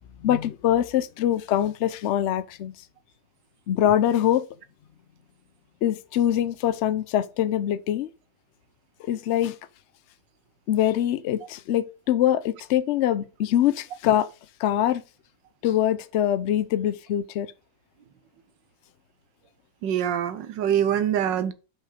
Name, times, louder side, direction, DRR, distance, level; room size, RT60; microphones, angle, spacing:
voice 1, 0.2-2.7 3.7-4.5 5.8-8.1 9.0-9.6 10.7-14.3 14.6-15.0 15.6-17.5, left 11 dB, 85° left, 0.6 m, -23 dB
voice 2, 19.8-21.5, right 9 dB, 85° right, 1.5 m, -24 dB
5.6 x 5.0 x 4.8 m
omnidirectional pair, 1.9 m